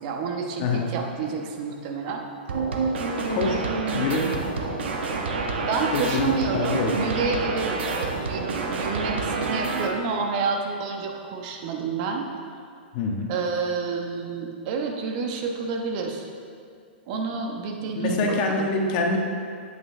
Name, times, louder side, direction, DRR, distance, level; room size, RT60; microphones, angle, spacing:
voice 1, 0.0-2.2 5.7-12.3 13.3-16.3 17.1-18.7, right 4 dB, 45° right, 2 dB, 1.1 m, -29 dB
voice 2, 0.6-0.9 3.3-3.6 3.9-4.2 5.9-6.9 12.9-13.3 17.9-19.2, left 3 dB, 40° left, 0 dB, 1.5 m, -25 dB
sound 1, 2.5-9.9, right 3 dB, 80° right, 1.4 m, -28 dB
12.5 x 8.5 x 3.3 m, 2.2 s
hypercardioid pair, 145°, 6 cm